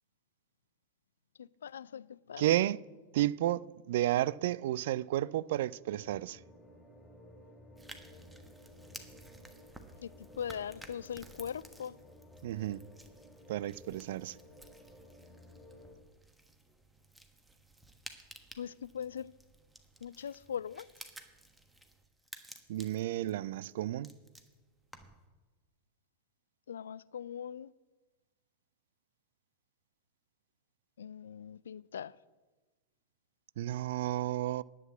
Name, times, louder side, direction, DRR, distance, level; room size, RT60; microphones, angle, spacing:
voice 1, 1.4-2.5 10.0-10.1 10.4-12.0 18.6-19.3 20.0-20.9 26.7-27.7 31.0-32.1, left 8 dB, 65° left, 0.3 m, -41 dB
voice 2, 2.4-2.8 3.1-6.4 12.4-12.8 13.5-14.4 22.7-24.1 33.6-34.6, right 14 dB, 55° right, 0.3 m, -32 dB
sound 1, 5.9-16.0, left 1 dB, 15° left, 2.6 m, -56 dB
sound 2, 7.8-25.3, right 2 dB, 5° right, 1.2 m, -55 dB
11.0 x 8.4 x 8.3 m
figure-of-eight pair, 90°, 0 cm